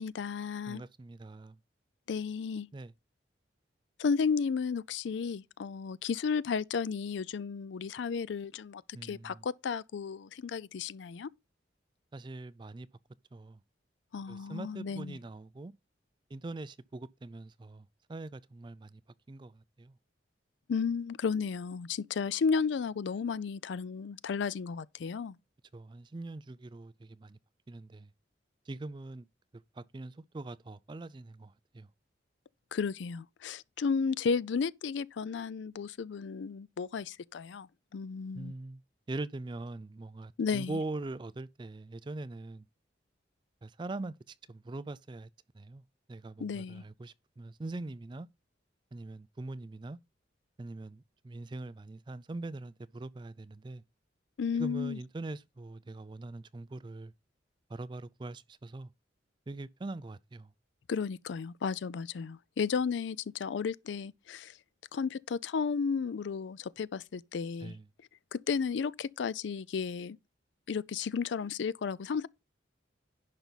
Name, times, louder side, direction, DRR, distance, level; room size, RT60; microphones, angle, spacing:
voice 1, 0.0-0.8 2.1-2.7 4.0-11.3 14.1-15.2 20.7-25.4 32.7-38.5 40.4-40.8 46.4-46.8 54.4-55.0 60.9-64.6 64.9-67.8 68.3-70.2 70.7-72.3, left 5 dB, 75° left, 0.4 m, -33 dB
voice 2, 0.7-1.6 2.7-2.9 8.9-9.4 12.1-12.9 13.3-13.6 14.3-15.7 16.3-19.0 19.3-19.9 25.7-27.4 27.7-28.1 28.7-29.3 29.8-31.9 38.3-38.8 39.1-42.7 43.6-45.3 45.5-45.8 46.1-48.3 48.9-50.0 50.6-53.8 54.5-57.1 57.7-58.9 59.5-60.5 67.6-67.8, right 2 dB, 25° right, 0.3 m, -42 dB
10.5 x 5.3 x 4.0 m
head